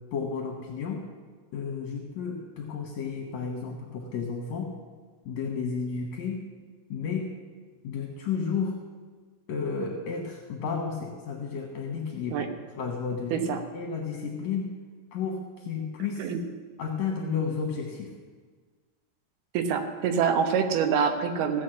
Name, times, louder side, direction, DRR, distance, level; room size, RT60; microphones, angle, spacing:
voice 1, 0.1-1.0 1.5-4.7 5.3-6.4 6.9-7.3 7.8-8.8 9.5-12.5 12.8-13.5 13.7-14.7 15.1-16.3 16.8-18.1, left 5 dB, 60° left, 1 dB, 2.0 m, -32 dB
voice 2, 19.5-21.6, right 6 dB, 85° right, 7 dB, 3.0 m, -25 dB
16.0 x 6.3 x 7.7 m, 1.5 s
omnidirectional pair, 4.4 m